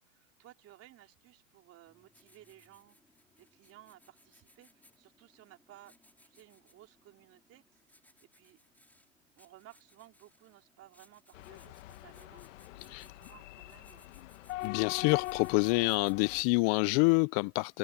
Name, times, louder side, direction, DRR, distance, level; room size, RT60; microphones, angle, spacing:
voice 1, 0.0-3.0 3.4-5.9 6.2-7.8 8.2-8.6 9.4-12.4 12.7-14.1, right 14 dB, 35° right, 4.5 m, -58 dB
Writing, 1.9-16.8, left 1 dB, 5° left, 4.9 m, -65 dB
sound 1, 11.3-16.4, left 17 dB, 65° left, 1.6 m, -43 dB
voice 2, 14.6-17.8, left 30 dB, 40° left, 0.4 m, -27 dB
hypercardioid pair, 120°, 39 cm